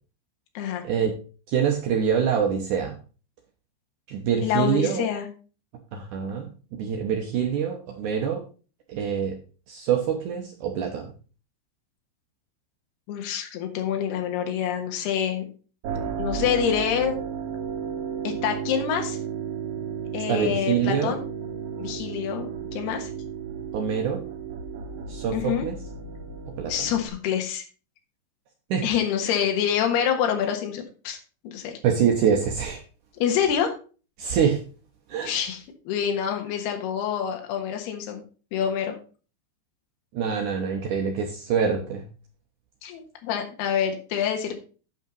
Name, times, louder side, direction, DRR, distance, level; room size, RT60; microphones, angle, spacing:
voice 1, 0.8-1.2 1.5-3.0 4.1-5.0 5.9-6.5 6.8-8.4 8.9-9.4 9.7-11.1 20.3-21.1 23.7-24.2 25.1-25.8 26.6-26.9 28.7-28.8 29.2-29.3 31.8-32.8 34.2-34.6 35.1-35.4 40.1-42.0, right 7 dB, 85° right, 2 dB, 1.7 m, -25 dB
voice 2, 4.4-5.3 13.1-15.5 16.2-17.1 18.2-19.2 20.1-21.2 21.8-23.1 25.3-25.7 26.7-27.6 28.8-31.2 31.4-31.8 33.2-33.7 35.2-38.2 38.5-38.9 42.8-44.5, left 8 dB, 70° left, 4 dB, 3.3 m, -26 dB
sound 1, 15.8-27.1, right 7 dB, 60° right, 2.7 m, -33 dB
9.2 x 5.4 x 5.3 m, 0.37 s
omnidirectional pair, 5.1 m